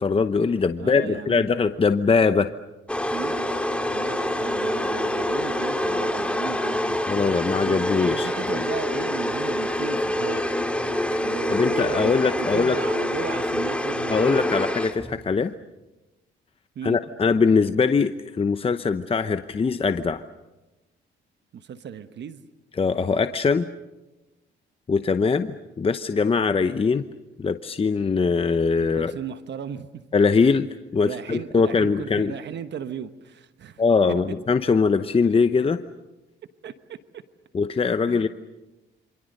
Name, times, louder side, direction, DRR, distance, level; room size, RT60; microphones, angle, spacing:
voice 1, 0.0-2.5 7.1-8.6 11.1-11.2 11.5-12.8 14.1-15.5 16.8-20.2 22.8-23.7 24.9-27.0 27.4-29.1 30.1-30.7 30.9-32.3 33.8-35.8 37.5-38.3, left 5 dB, 30° left, 10 dB, 0.9 m, -22 dB
voice 2, 0.8-1.5 3.1-3.5 3.9-7.0 7.7-10.4 11.2-14.2 16.7-17.0 21.5-22.4 28.9-30.1 31.0-33.8 34.1-34.2 36.6-37.0 38.1-38.3, right 8 dB, 60° right, 11 dB, 1.2 m, -36 dB
sound 1, 2.9-15.3, left 1 dB, 5° left, 2.5 m, -26 dB
27.5 x 26.5 x 6.7 m, 1.0 s
cardioid pair, 90°, 20 cm